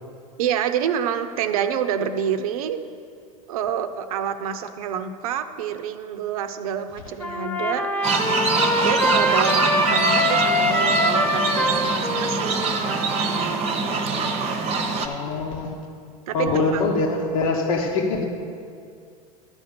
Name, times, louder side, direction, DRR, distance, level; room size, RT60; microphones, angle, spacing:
voice 1, 0.4-2.8 3.5-7.9 8.8-12.6 16.3-16.8, right 8 dB, 70° right, 9 dB, 0.6 m, -27 dB
Trumpet, 7.2-13.8, left 1 dB, 5° left, 1.2 m, -23 dB
sound 1, 8.0-15.1, right 4 dB, 35° right, 0.9 m, -24 dB
voice 2, 15.0-15.8 16.3-18.2, left 3 dB, 65° left, 2 dB, 1.2 m, -23 dB
12.0 x 4.4 x 6.7 m, 2.3 s
hypercardioid pair, 95°, 19 cm